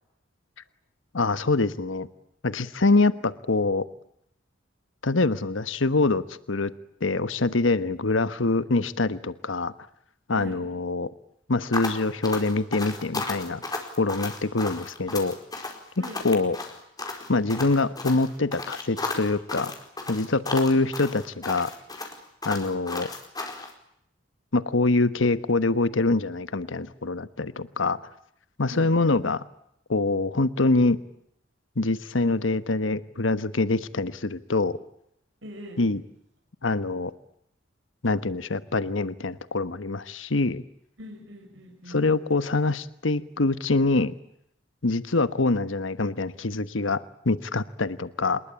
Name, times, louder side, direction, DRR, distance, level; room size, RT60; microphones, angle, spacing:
voice 1, 1.1-2.1 2.4-3.9 5.0-6.7 7.0-9.7 10.3-11.1 11.5-13.6 14.0-15.4 16.2-16.6 17.3-19.7 20.1-21.7 22.4-23.1 24.5-28.0 28.6-29.4 29.9-31.0 31.8-34.8 35.8-36.0 36.6-37.1 38.0-40.6 41.9-44.1 44.8-48.4, left 3 dB, 80° left, 13 dB, 1.3 m, -24 dB
sound 1, 11.7-23.7, left 3 dB, 20° left, 4.7 m, -34 dB
voice 2, 35.4-35.8 41.0-42.1, equal, 70° right, 3 dB, 6.2 m, -42 dB
27.0 x 21.5 x 8.7 m, 0.75 s
head